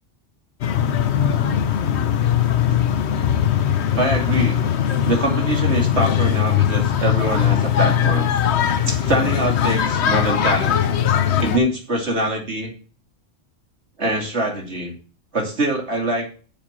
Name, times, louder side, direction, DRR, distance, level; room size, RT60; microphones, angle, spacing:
sound 1, 0.6-11.6, left 9 dB, 60° left, 1.0 m, -20 dB
voice 1, 3.9-4.6 5.0-8.3 8.9-10.8 11.4-12.7 14.0-14.9 15.3-16.3, right 1 dB, 60° right, 1 dB, 2.9 m, -23 dB
7.3 x 5.4 x 7.3 m, 0.37 s
omnidirectional pair, 1.3 m